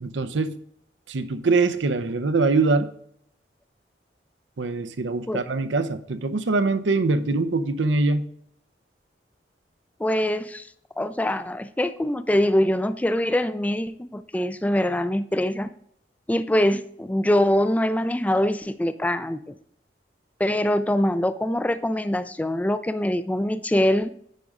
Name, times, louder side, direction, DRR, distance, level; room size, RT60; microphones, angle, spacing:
voice 1, 0.0-0.6 1.1-2.9 4.6-8.3, right 3 dB, 85° right, 0.6 m, -23 dB
voice 2, 10.0-10.7 11.0-15.7 16.3-19.6 20.4-24.1, left 1 dB, 10° left, 0.3 m, -23 dB
9.3 x 5.3 x 3.6 m
head